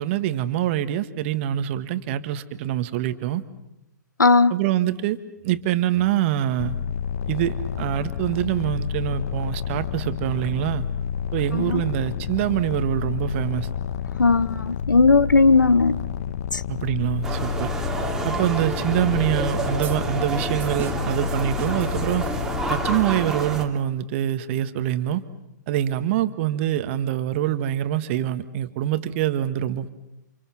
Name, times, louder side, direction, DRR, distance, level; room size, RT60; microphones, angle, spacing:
voice 1, 0.0-3.4 4.5-5.2 5.4-6.7 7.3-10.8 11.3-13.7 16.7-17.7 18.2-22.2 22.7-25.2 25.7-29.9, right 12 dB, 40° right, 1.7 m, -25 dB
voice 2, 4.2-4.5 11.5-11.8 14.2-16.0 16.5-16.6, left 4 dB, 80° left, 0.9 m, -17 dB
sound 1, 6.6-23.0, left 7 dB, 55° left, 1.4 m, -29 dB
sound 2, 17.2-23.6, right 3 dB, 5° right, 2.8 m, -29 dB
sound 3, 19.8-22.9, right 8 dB, 20° right, 2.5 m, -42 dB
29.0 x 28.0 x 6.1 m
figure-of-eight pair, 120°, 10 cm